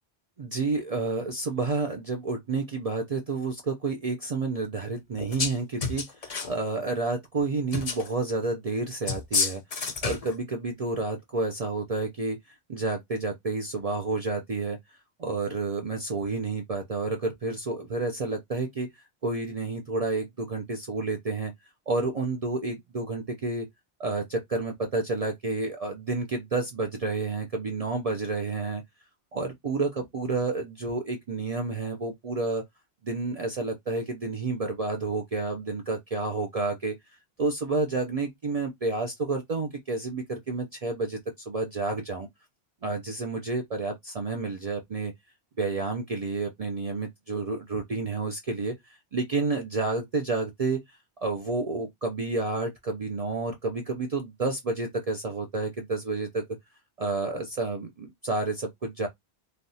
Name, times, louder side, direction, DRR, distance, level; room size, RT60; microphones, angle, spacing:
voice 1, 0.4-14.8 15.2-21.5 21.9-23.7 24.0-28.8 29.3-32.6 33.0-37.0 37.4-41.2 41.5-42.3 42.8-45.1 45.6-56.5 57.0-59.1, right 3 dB, 45° right, 0.5 m, -30 dB
sound 1, 5.2-5.5 5.8-6.5 7.7-8.1 9.1-10.3, left 5 dB, 45° left, 0.6 m, -29 dB
3.3 x 2.4 x 2.6 m
omnidirectional pair, 1.1 m